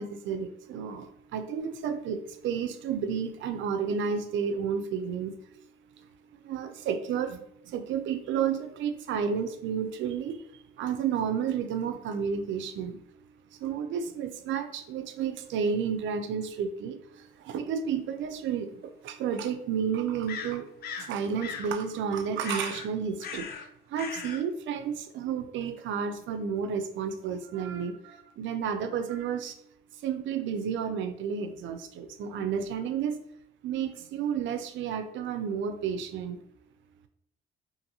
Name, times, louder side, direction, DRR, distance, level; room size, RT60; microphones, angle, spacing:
voice 1, 0.0-5.4 6.4-13.0 13.6-20.7 21.0-23.5 23.9-29.6 30.0-33.3 33.6-36.4, right 7 dB, 75° right, 9 dB, 0.4 m, -31 dB
sound 1, 18.2-18.3 20.3-21.1 21.4-21.7 22.4-22.9 23.2-23.7 23.9-24.4, left 6 dB, 50° left, 0.4 m, -38 dB
2.6 x 2.5 x 2.8 m, 0.73 s
cardioid pair, 90°, 20 cm